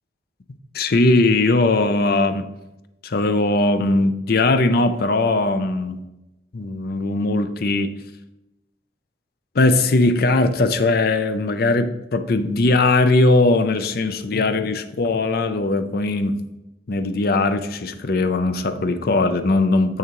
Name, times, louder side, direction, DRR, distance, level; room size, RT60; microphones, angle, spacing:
voice 1, 0.7-2.5 3.0-6.0 6.5-7.9 9.5-16.4 16.9-20.0, left 2 dB, 55° left, 9 dB, 0.5 m, -19 dB
7.2 x 6.6 x 3.0 m, 0.94 s
head